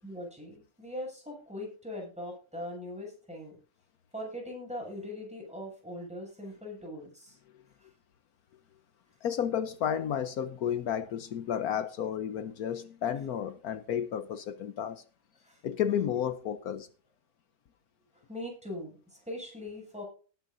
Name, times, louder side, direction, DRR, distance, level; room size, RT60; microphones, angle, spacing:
voice 1, 0.0-3.6 4.1-7.4 15.4-15.6 18.3-20.0, left 1 dB, 5° right, 7.6 m, -41 dB
voice 2, 9.2-15.0 15.6-16.9, left 9 dB, 75° left, 1.3 m, -32 dB
19.0 x 9.7 x 2.6 m
omnidirectional pair, 1.6 m